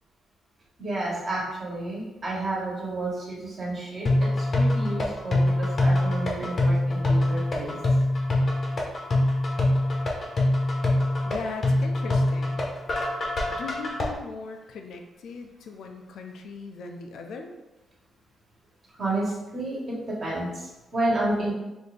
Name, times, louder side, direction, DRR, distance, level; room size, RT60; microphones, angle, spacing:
voice 1, 0.8-7.7 19.0-19.8 20.1-21.5, right 2 dB, 40° right, -5 dB, 1.4 m, -30 dB
sound 1, 4.1-14.0, left 1 dB, 40° left, 0.7 m, -24 dB
voice 2, 11.3-12.6 13.5-17.5, left 4 dB, 75° left, 3 dB, 0.5 m, -38 dB
4.2 x 2.6 x 3.3 m, 1.0 s
cardioid pair, 130°, 0 cm